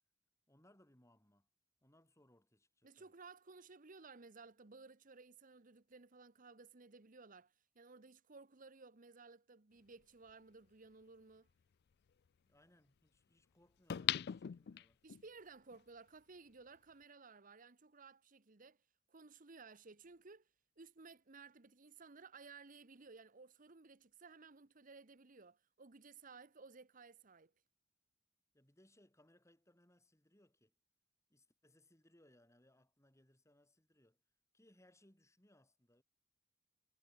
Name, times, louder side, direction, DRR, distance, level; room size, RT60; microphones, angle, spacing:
voice 1, 0.5-1.5 1.8-3.1 12.5-15.0 28.5-30.7 31.3-34.2 34.5-36.0, left 1 dB, 15° left, 4.6 m, -70 dB
voice 2, 2.8-11.5 15.0-18.8 19.1-20.5 20.8-27.5, right 4 dB, 45° right, 1.1 m, -58 dB
sound 1, 10.3-10.4 13.9-15.2 15.7-15.8, left 11 dB, 60° left, 0.4 m, -38 dB
head